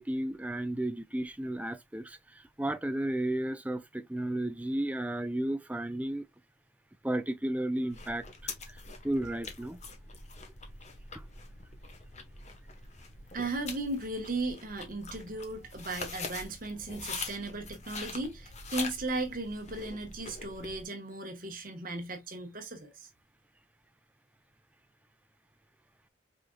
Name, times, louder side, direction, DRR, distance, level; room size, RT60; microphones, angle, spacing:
voice 1, 0.0-2.2 2.6-6.3 7.0-8.5 9.0-9.8, right 1 dB, 5° right, 0.4 m, -33 dB
sound 1, 7.9-20.8, left 4 dB, 35° left, 0.9 m, -44 dB
voice 2, 13.3-23.1, right 2 dB, 45° right, 1.1 m, -36 dB
5.0 x 3.7 x 2.2 m
head